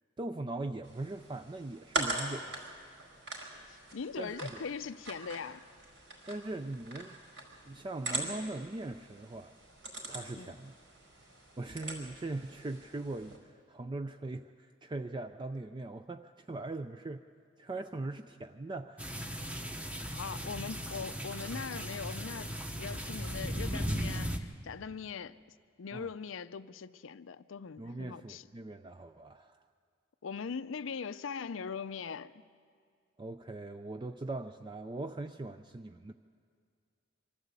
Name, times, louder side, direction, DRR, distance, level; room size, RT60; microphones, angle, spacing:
voice 1, 0.2-2.6 4.2-4.6 6.3-7.2 7.6-9.5 10.1-10.7 11.6-17.3 17.6-19.1 25.9-26.1 27.8-29.6 33.2-36.1, right 2 dB, 25° right, 0.4 m, -40 dB
sound 1, 0.8-13.4, right 2 dB, 70° right, 4.9 m, -42 dB
voice 2, 3.7-5.6 10.4-10.6 20.1-25.4 25.8-28.4 30.2-32.3, left 6 dB, 80° left, 0.5 m, -41 dB
sound 2, 19.0-24.4, equal, 5° right, 1.0 m, -37 dB
24.0 x 13.5 x 8.2 m
head